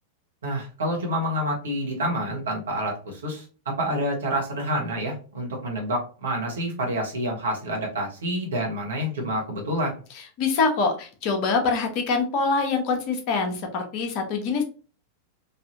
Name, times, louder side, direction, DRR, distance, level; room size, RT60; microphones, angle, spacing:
voice 1, 0.4-9.9, equal, 65° right, 0 dB, 1.2 m, -28 dB
voice 2, 10.4-14.6, left 4 dB, 45° left, 4 dB, 0.8 m, -24 dB
3.2 x 2.6 x 2.7 m, 0.37 s
figure-of-eight pair, 90°, 0 cm